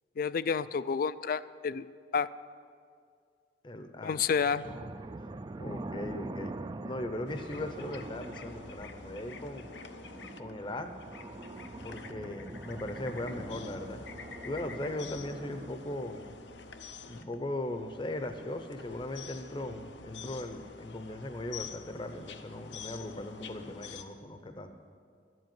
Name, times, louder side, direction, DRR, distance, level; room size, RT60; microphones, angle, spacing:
voice 1, 0.2-1.9 2.1-2.3 4.0-4.7, left 6 dB, 55° left, 15 dB, 0.4 m, -30 dB
voice 2, 3.6-4.6 5.5-6.5 6.8-9.7 10.4-10.9 11.8-14.0 14.4-16.3 17.0-24.7, left 1 dB, 30° left, 7 dB, 0.7 m, -38 dB
sound 1, 4.6-15.7, right 2 dB, 25° right, 0.4 m, -44 dB
sound 2, 7.3-24.0, left 5 dB, 85° left, 0.8 m, -48 dB
13.5 x 7.8 x 9.2 m, 2.2 s
head